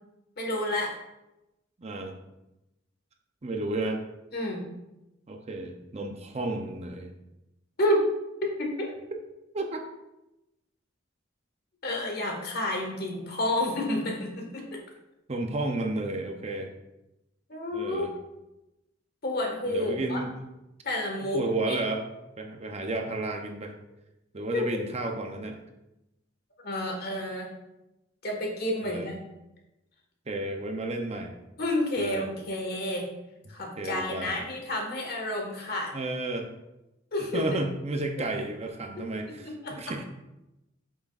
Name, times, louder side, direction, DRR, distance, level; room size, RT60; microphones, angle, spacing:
voice 1, 0.4-0.9 4.3-4.7 7.8-8.0 8.6-8.9 11.8-14.8 17.5-18.1 19.2-20.2 20.8-21.8 24.5-24.6 26.6-27.5 28.2-29.2 31.6-33.1 33.5-35.9 37.1-37.4 39.0-39.1 39.6-39.8, left 1 dB, 55° left, 1 dB, 1.5 m, -30 dB
voice 2, 1.8-2.2 3.4-4.0 5.3-7.1 9.5-9.9 15.3-16.7 17.7-18.1 19.7-20.3 21.3-23.8 24.3-25.6 28.8-29.1 30.3-31.4 32.0-32.3 33.8-34.4 35.9-36.5 37.3-40.0, right 2 dB, 35° right, 3 dB, 0.6 m, -32 dB
8.0 x 6.1 x 2.4 m, 0.94 s
head